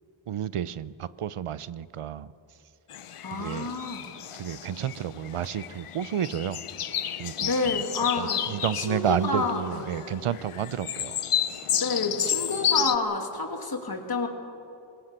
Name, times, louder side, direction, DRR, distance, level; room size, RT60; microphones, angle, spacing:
voice 1, 0.3-2.3 3.3-3.7 4.4-6.6 7.2-7.8 8.1-11.2, right 9 dB, 85° right, 17 dB, 0.7 m, -31 dB
sound 1, 2.9-13.0, left 9 dB, 85° left, 0.9 m, -31 dB
voice 2, 3.2-4.0 7.4-8.4 8.7-10.0 11.8-14.3, left 3 dB, 45° left, 4 dB, 2.5 m, -29 dB
24.0 x 21.0 x 6.7 m, 2.7 s
wide cardioid pair, 90°, 50 cm